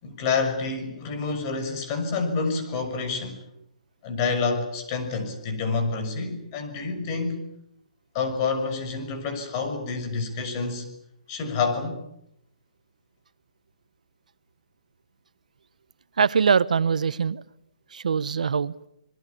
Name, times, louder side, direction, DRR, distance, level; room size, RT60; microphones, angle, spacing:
voice 1, 0.0-3.4 4.0-7.4 8.1-10.8 11.3-12.0, left 4 dB, 30° left, 6.4 m, -28 dB
voice 2, 16.2-17.4 17.9-18.9, right 6 dB, 80° right, 1.0 m, -23 dB
28.0 x 21.5 x 8.6 m
hypercardioid pair, 155°, 4 cm